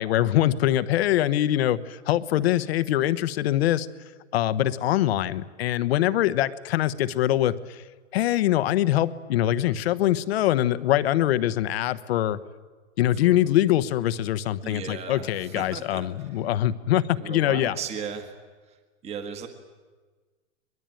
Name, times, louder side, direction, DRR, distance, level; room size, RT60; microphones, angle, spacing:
voice 1, 0.0-3.9 4.3-7.8 8.1-12.4 13.0-17.8, left 13 dB, 50° left, 15 dB, 1.1 m, -23 dB
voice 2, 14.6-16.0 16.3-16.4 17.1-18.3 18.7-18.8 19.0-19.5, right 6 dB, 15° right, 6 dB, 1.7 m, -36 dB
23.0 x 22.0 x 9.2 m, 1.4 s
hypercardioid pair, 160°, 40 cm